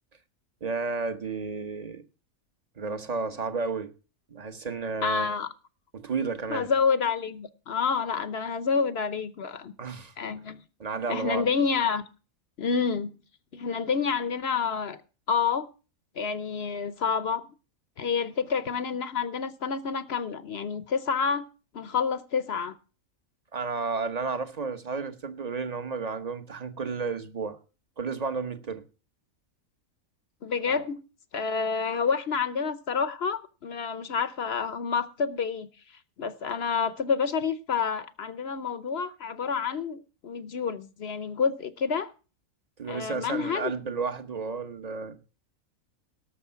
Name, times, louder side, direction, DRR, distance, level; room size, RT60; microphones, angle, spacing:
voice 1, 0.6-2.0 2.8-3.9 4.3-5.3 5.9-6.7 9.8-10.1 10.8-11.5 23.5-27.6 28.0-28.8 30.7-30.9 42.8-45.2, right 4 dB, 30° right, 1.0 m, -32 dB
voice 2, 5.0-5.5 6.5-9.7 10.2-10.6 11.1-12.0 12.6-13.1 13.5-15.0 15.3-15.7 16.2-17.5 18.0-21.5 21.7-22.8 30.4-31.0 31.3-35.7 36.2-42.1 42.9-43.7, left 5 dB, 55° left, 0.9 m, -28 dB
17.5 x 6.8 x 5.7 m
omnidirectional pair, 1.5 m